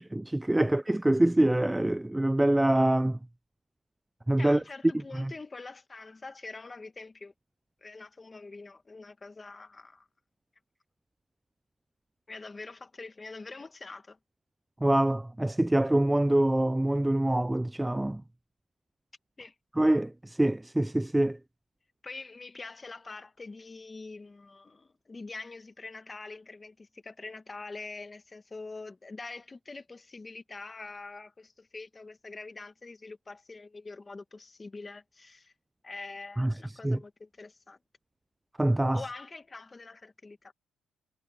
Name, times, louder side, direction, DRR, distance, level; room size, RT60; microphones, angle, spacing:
voice 1, 0.1-3.2 4.3-4.6 5.2-5.3 14.8-18.2 19.8-21.4 36.4-36.5 36.8-37.0 38.6-39.0, right 1 dB, 10° right, 0.3 m, -25 dB
voice 2, 4.4-7.3 7.8-10.1 12.3-14.2 19.4-19.5 22.0-35.5 35.8-37.8 38.9-40.5, left 3 dB, 25° left, 1.9 m, -44 dB
cardioid pair, 90°, 0 cm